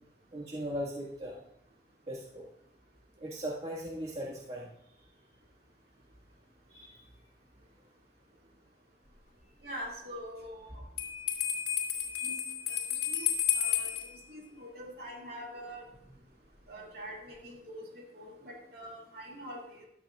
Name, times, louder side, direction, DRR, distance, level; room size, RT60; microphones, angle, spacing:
voice 1, 0.3-1.4 2.1-2.5 3.2-4.7 6.7-7.0, equal, 35° right, -6 dB, 1.8 m, -38 dB
voice 2, 9.6-10.8 12.2-12.4 12.7-13.3 13.5-13.9 14.3-15.9 16.7-19.8, equal, 55° right, -1 dB, 2.5 m, -44 dB
Bell, 11.0-14.1, left 10 dB, 70° left, 2.7 m, -31 dB
14.0 x 12.5 x 2.5 m, 0.77 s
head